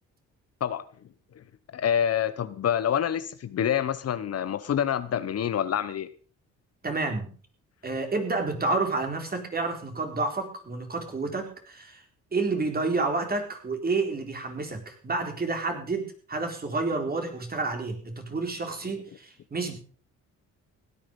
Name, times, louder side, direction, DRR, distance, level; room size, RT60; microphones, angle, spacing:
voice 1, 1.7-6.1, left 9 dB, 55° left, 14 dB, 1.0 m, -27 dB
voice 2, 6.8-7.3 7.8-12.0 12.3-19.8, right 3 dB, 30° right, 4 dB, 4.0 m, -29 dB
16.5 x 9.9 x 5.3 m, 0.42 s
cardioid pair, 90°, 30 cm